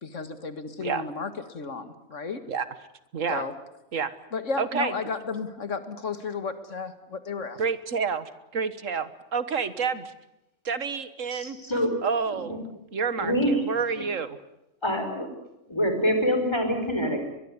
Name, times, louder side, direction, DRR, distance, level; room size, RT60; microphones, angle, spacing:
voice 1, 0.0-2.4 3.3-3.5 4.3-7.6, left 4 dB, 75° left, 11 dB, 2.1 m, -33 dB
voice 2, 4.6-4.9 7.6-10.1 10.6-11.6 12.0-14.4, right 5 dB, 80° right, 14 dB, 1.8 m, -29 dB
voice 3, 11.3-11.9 12.5-12.6 13.2-13.5 14.8-15.3 15.7-17.2, equal, 20° left, 6 dB, 5.0 m, -25 dB
22.5 x 22.0 x 9.6 m, 0.89 s
omnidirectional pair, 1.3 m